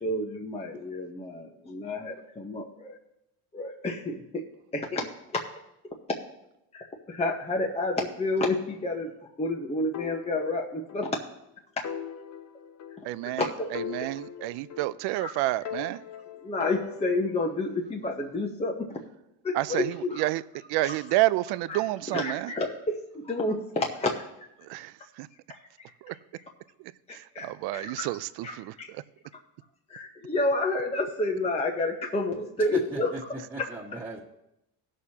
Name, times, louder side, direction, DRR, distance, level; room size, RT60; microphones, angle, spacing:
voice 1, 0.0-3.0 3.5-4.4 4.7-5.1 6.7-11.2 13.2-13.7 14.0-14.1 15.2-15.3 16.4-18.9 19.4-20.2 20.8-20.9 21.7-21.8 22.1-24.2 25.5-25.6 27.1-28.1 28.4-28.9 29.9-33.1, left 2 dB, 15° left, 0 dB, 0.9 m, -30 dB
sound 1, 9.9-11.1 11.4-11.5 11.8-13.4 13.7-15.2 15.6-17.5, left 8 dB, 40° left, 0.9 m, -40 dB
voice 2, 13.0-16.0 19.5-20.4 20.7-22.5 24.6-25.3 26.0-26.2 26.8-29.0, right 17 dB, 70° right, 17 dB, 0.5 m, -30 dB
voice 3, 32.6-34.2, right 2 dB, 15° right, -8 dB, 1.7 m, -38 dB
17.5 x 6.4 x 2.8 m, 0.86 s
cardioid pair, 120°, 41 cm